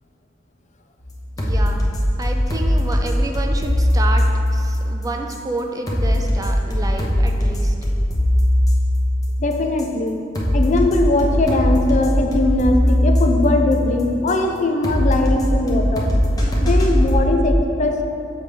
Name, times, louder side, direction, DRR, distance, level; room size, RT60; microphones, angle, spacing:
sound 1, 1.0-17.2, left 1 dB, 20° left, 0.9 m, -20 dB
voice 1, 1.4-1.9 2.2-7.7, right 2 dB, 20° right, 2 dB, 0.3 m, -29 dB
voice 2, 9.4-10.2 10.5-16.1 16.6-18.0, left 2 dB, 40° left, 4 dB, 0.5 m, -20 dB
6.6 x 3.3 x 5.1 m, 2.5 s
head